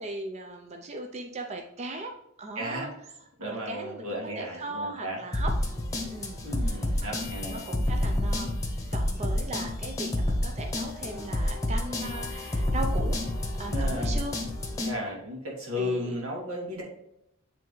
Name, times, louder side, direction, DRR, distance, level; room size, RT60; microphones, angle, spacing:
voice 1, 0.0-2.1 2.4-2.9 3.4-5.5 6.1-6.4 6.7-8.6 8.9-13.2 13.6-14.4 14.8-15.0 15.7-16.2, right 2 dB, 30° right, 3 dB, 0.5 m, -38 dB
voice 2, 2.6-2.9 3.4-5.2 6.4-7.6 13.7-14.2 14.8-16.8, left 1 dB, 90° right, -2 dB, 2.1 m, -34 dB
sound 1, 5.3-14.9, left 1 dB, 15° left, 0.9 m, -29 dB
9.0 x 3.4 x 3.1 m, 0.81 s
head